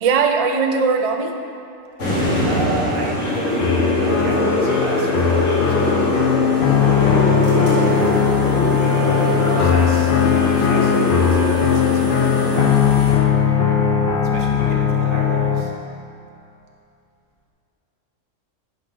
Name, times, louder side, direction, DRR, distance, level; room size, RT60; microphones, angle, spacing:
voice 1, 0.0-1.3, right 5 dB, 65° right, 5 dB, 0.3 m, -19 dB
sound 1, 2.0-13.1, left 1 dB, 75° left, 2.0 m, -22 dB
voice 2, 2.4-10.1 10.5-13.0 14.2-15.7, right 3 dB, 90° right, 0 dB, 1.4 m, -33 dB
sound 2, 3.6-15.6, left 7 dB, 50° left, 0.7 m, -18 dB
10.0 x 4.8 x 3.9 m, 2.7 s
omnidirectional pair, 1.3 m